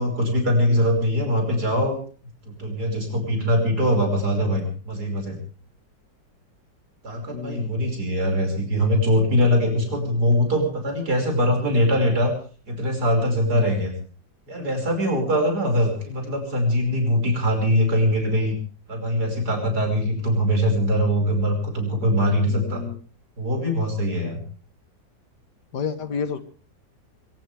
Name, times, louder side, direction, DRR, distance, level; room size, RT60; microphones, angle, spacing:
voice 1, 0.0-2.0 2.5-5.4 7.0-12.3 12.7-13.9 14.5-18.6 18.9-22.8 23.4-24.4, equal, 60° right, 3 dB, 6.0 m, -22 dB
voice 2, 7.3-7.7 22.5-23.0 25.7-26.4, left 6 dB, 65° left, 11 dB, 2.0 m, -30 dB
22.0 x 19.0 x 3.4 m, 0.40 s
omnidirectional pair, 2.0 m